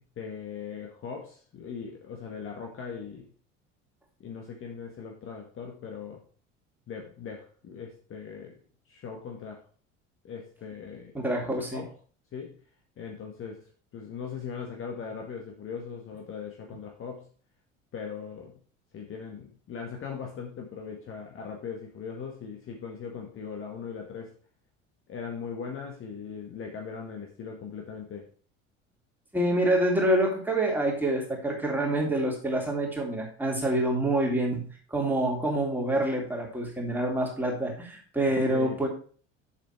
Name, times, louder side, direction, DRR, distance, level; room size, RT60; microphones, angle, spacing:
voice 1, 0.2-3.3 4.2-6.2 6.9-8.6 8.9-9.7 10.2-11.1 11.4-11.8 12.3-12.6 13.0-17.3 17.9-18.5 18.9-24.3 25.1-28.3 38.5-38.8, left 6 dB, 35° left, 1 dB, 1.7 m, -39 dB
voice 2, 11.1-11.8 29.3-38.9, right 1 dB, 5° right, -2 dB, 3.6 m, -27 dB
7.8 x 7.4 x 4.6 m, 0.43 s
figure-of-eight pair, 65°, 38 cm